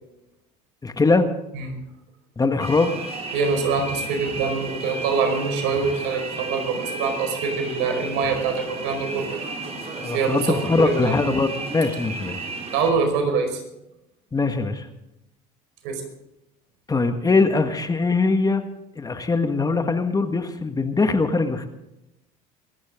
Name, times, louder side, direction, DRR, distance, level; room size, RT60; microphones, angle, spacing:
voice 1, 0.8-1.3 2.4-3.0 10.0-12.4 14.3-14.9 16.9-18.6 19.0-21.7, left 3 dB, 20° left, 7 dB, 1.6 m, -21 dB
sound 1, 2.6-12.9, right 3 dB, 35° right, 4.0 m, -34 dB
voice 2, 3.3-9.3 10.1-11.3 12.7-13.6 15.8-16.0, right 5 dB, 70° right, 5 dB, 5.0 m, -24 dB
24.5 x 12.0 x 3.7 m, 0.89 s
hypercardioid pair, 85°, 19 cm